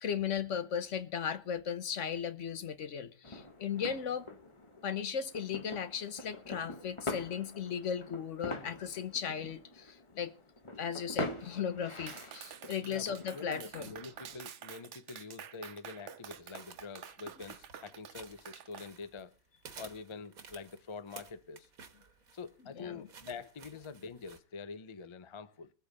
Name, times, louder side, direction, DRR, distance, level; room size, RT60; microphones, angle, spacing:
voice 1, 0.0-4.3 4.8-10.3 10.8-13.9 22.7-23.0, left 7 dB, 60° left, 1.2 m, -36 dB
sound 1, 3.2-14.4, left 2 dB, 25° left, 1.1 m, -44 dB
Clapping, 12.1-18.9, right 9 dB, 60° right, 1.0 m, -49 dB
voice 2, 12.8-19.3 19.8-21.7 22.3-25.7, left 4 dB, 40° left, 0.4 m, -46 dB
sound 2, 16.5-19.3 19.6-24.4, right 6 dB, 80° right, 1.8 m, -54 dB
21.5 x 8.2 x 4.0 m
omnidirectional pair, 1.5 m